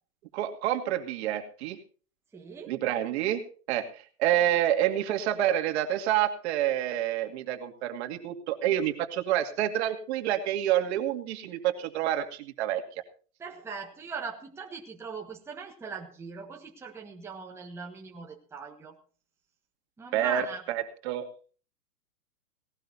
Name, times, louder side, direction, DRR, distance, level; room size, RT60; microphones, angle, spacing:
voice 1, 0.3-1.8 2.7-3.4 3.7-12.8 20.1-21.3, right 11 dB, 40° right, 5 dB, 2.4 m, -28 dB
voice 2, 2.3-2.7 13.4-18.9 20.0-20.6, right 5 dB, 5° right, 0 dB, 1.5 m, -40 dB
18.5 x 18.0 x 2.7 m, 0.39 s
hypercardioid pair, 160°, 48 cm